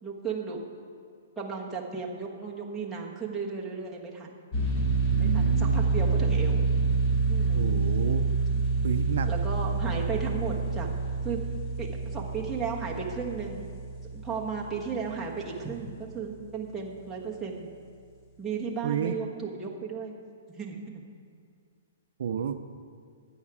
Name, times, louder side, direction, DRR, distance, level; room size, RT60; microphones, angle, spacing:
voice 1, 0.0-0.6 1.4-4.3 5.2-6.7 7.3-7.7 9.2-10.9 11.2-11.4 11.8-13.7 14.1-17.7 18.4-20.1 20.6-21.0, right 5 dB, 5° right, -5 dB, 1.2 m, -35 dB
sound 1, 4.5-15.4, right 4 dB, 20° left, 1.5 m, -27 dB
voice 2, 5.1-6.0 7.5-8.3 8.8-9.3 18.8-19.1 22.2-22.6, right 7 dB, 65° right, 9 dB, 0.6 m, -31 dB
13.0 x 8.7 x 4.9 m, 2.2 s
hypercardioid pair, 165°, 0 cm